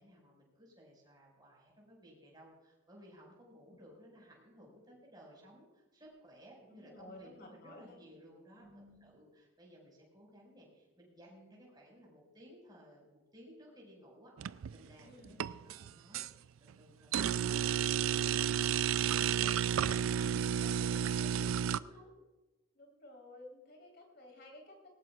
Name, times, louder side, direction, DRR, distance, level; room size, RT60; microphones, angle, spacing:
voice 1, 0.0-8.7 9.0-22.1, equal, 20° right, -2 dB, 5.4 m, -58 dB
voice 2, 6.7-8.1 8.6-9.0 15.0-15.4 22.7-24.9, left 1 dB, 50° left, 0 dB, 3.9 m, -54 dB
sound 1, 14.4-14.9 15.3-16.3 17.1-21.8, right 9 dB, 85° right, 0.4 m, -32 dB
20.0 x 18.5 x 2.4 m, 1.1 s
head